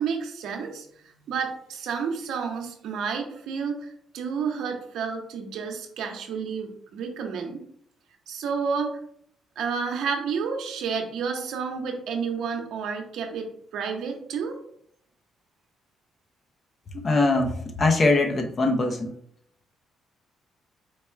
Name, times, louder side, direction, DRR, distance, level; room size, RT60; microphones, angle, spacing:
voice 1, 0.0-3.9 4.1-7.6 8.3-9.0 9.6-13.5 13.7-14.5, right 6 dB, 80° right, 3 dB, 0.9 m, -30 dB
voice 2, 16.9-17.5 17.8-19.1, left 2 dB, 40° left, 2 dB, 0.8 m, -22 dB
4.7 x 2.3 x 4.5 m, 0.66 s
cardioid pair, 90°, 0 cm